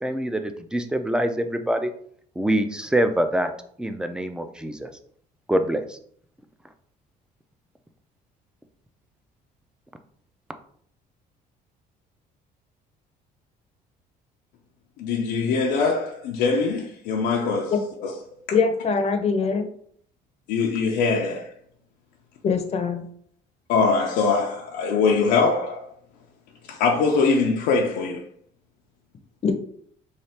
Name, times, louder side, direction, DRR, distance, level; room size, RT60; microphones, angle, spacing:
voice 1, 0.0-1.9 2.4-3.5 3.8-4.9 5.5-6.0, right 1 dB, 5° right, 0.4 m, -25 dB
voice 2, 15.0-17.7 18.0-18.1 20.5-21.5 23.7-25.9 26.7-28.3, left 4 dB, 90° left, 0.5 m, -22 dB
voice 3, 18.5-19.7 22.4-23.0 29.4-29.5, left 5 dB, 40° left, 0.6 m, -22 dB
3.2 x 2.4 x 4.2 m
cardioid pair, 110°, 17 cm